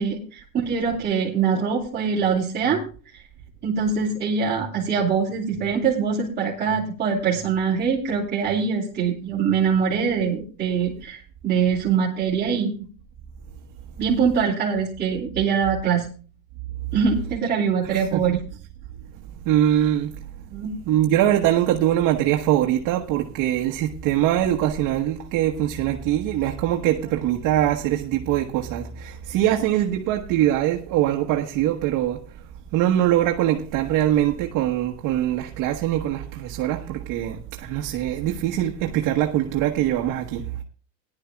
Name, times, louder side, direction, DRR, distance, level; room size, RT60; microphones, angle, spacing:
voice 1, 0.0-2.8 3.6-12.7 14.0-16.0 16.9-18.4 20.5-20.7 27.1-27.2, right 6 dB, 25° right, 2.8 m, -23 dB
voice 2, 17.8-18.2 19.4-20.1 20.9-32.2 32.7-40.5, right 12 dB, 55° right, 1.2 m, -22 dB
19.0 x 11.0 x 2.3 m
cardioid pair, 145°, 39 cm